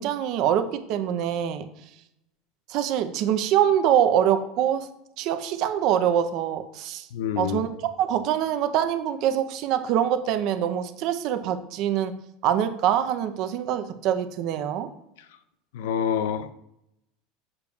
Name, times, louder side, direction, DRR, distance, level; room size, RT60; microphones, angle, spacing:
voice 1, 0.0-1.7 2.7-4.9 5.2-7.1 7.4-7.7 8.0-12.1 12.4-14.9, right 10 dB, 50° right, 0.6 m, -24 dB
voice 2, 7.1-7.6 15.7-16.5, left 8 dB, 85° left, 0.5 m, -27 dB
6.8 x 6.7 x 2.3 m
supercardioid pair, 155°, 0 cm